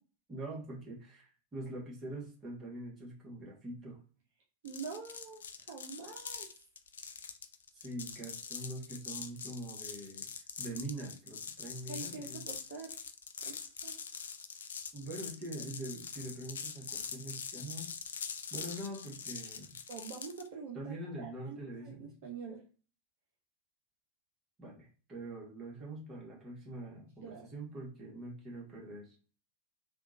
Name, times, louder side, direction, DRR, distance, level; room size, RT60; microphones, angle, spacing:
voice 1, 0.3-4.0 7.7-10.3 10.6-12.4 14.9-17.9 18.5-19.7 20.7-22.1 24.6-29.2, right 1 dB, 25° right, -3 dB, 1.5 m, -44 dB
voice 2, 4.6-6.5 11.9-13.0 13.4-14.0 19.9-22.6 27.2-27.4, right 5 dB, 50° right, -2 dB, 0.7 m, -46 dB
sound 1, 4.7-20.5, left 6 dB, 65° left, 0.3 m, -44 dB
3.5 x 2.4 x 2.6 m, 0.39 s
figure-of-eight pair, 90°, 0 cm